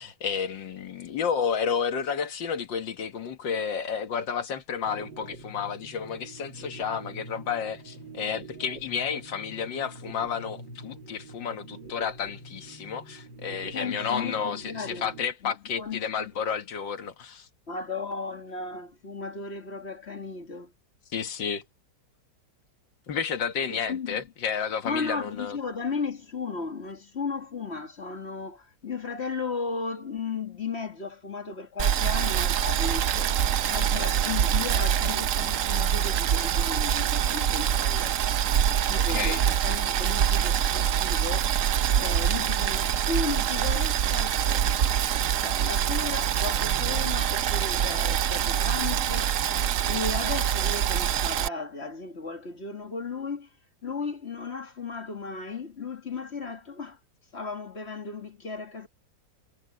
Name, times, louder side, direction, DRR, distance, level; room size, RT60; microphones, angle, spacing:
voice 1, 0.0-17.5 21.1-21.6 23.1-25.6 39.1-39.4, left 7 dB, 85° left, 2.2 m, -31 dB
sound 1, 4.8-15.3, right 2 dB, 80° right, 3.4 m, -45 dB
voice 2, 13.7-15.1 15.4-16.3 17.7-20.7 23.7-24.3 24.8-38.2 38.8-41.6 42.0-45.0 45.4-53.5 53.8-57.0 57.3-58.9, left 4 dB, 35° left, 2.2 m, -35 dB
Boiling, 31.8-51.5, right 9 dB, 60° right, 0.9 m, -25 dB
omnidirectional pair, 1.9 m